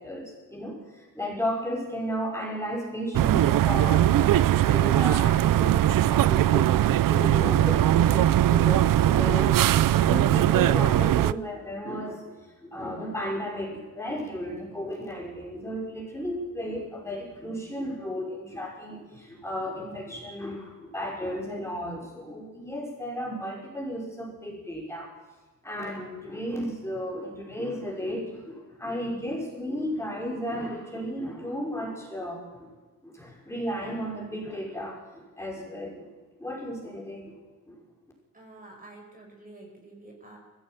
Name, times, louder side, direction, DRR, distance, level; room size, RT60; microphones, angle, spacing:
voice 1, 0.0-25.1 25.6-32.7 33.0-36.1 36.4-37.4 37.7-37.8, equal, 10° left, -2 dB, 5.6 m, -34 dB
sound 1, 3.1-11.3, right 12 dB, 75° right, 0.6 m, -20 dB
voice 2, 38.3-40.4, right 2 dB, 25° right, 1 dB, 5.3 m, -48 dB
21.0 x 15.5 x 9.2 m, 1.2 s
wide cardioid pair, 130°, 34 cm